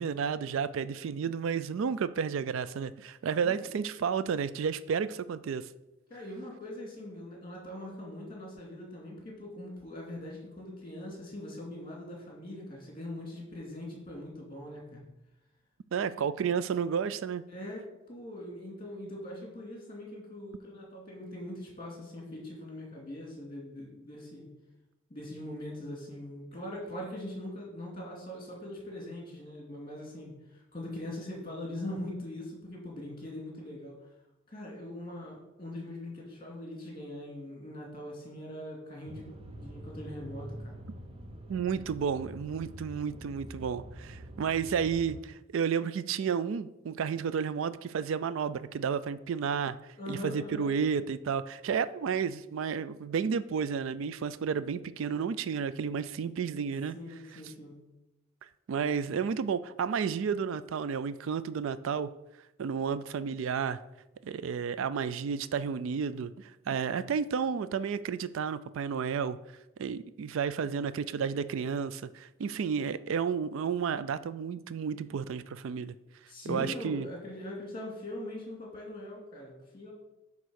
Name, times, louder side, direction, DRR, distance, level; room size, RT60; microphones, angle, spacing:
voice 1, 0.0-5.7 15.9-17.4 41.5-49.8 50.1-56.9 57.3-57.4 58.7-62.1 62.6-63.8 64.2-69.4 69.8-75.9 76.5-77.1, right 6 dB, 65° right, 0.3 m, -32 dB
voice 2, 3.4-3.7 6.1-15.0 17.5-24.5 25.1-34.0 34.5-40.7 50.0-50.8 56.9-57.8 76.3-79.9, left 1 dB, 25° left, 2.4 m, -42 dB
sound 1, 39.1-45.2, right 1 dB, 25° right, 0.6 m, -45 dB
9.2 x 3.6 x 6.3 m
head